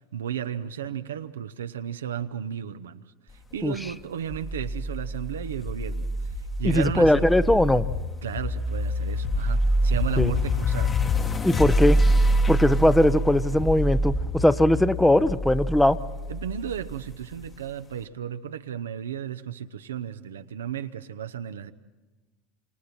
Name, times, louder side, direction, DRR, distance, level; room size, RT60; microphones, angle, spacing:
voice 1, 0.1-6.3 6.6-7.3 8.2-11.0 16.3-21.7, right 9 dB, 75° right, 10 dB, 0.8 m, -34 dB
sound 1, 4.3-17.5, equal, 25° left, 1.6 m, -26 dB
voice 2, 6.6-7.9 10.2-10.3 11.4-12.0 12.5-16.0, left 1 dB, 5° left, 13 dB, 0.9 m, -20 dB
28.0 x 27.0 x 4.4 m, 1.2 s
figure-of-eight pair, 75°, 0 cm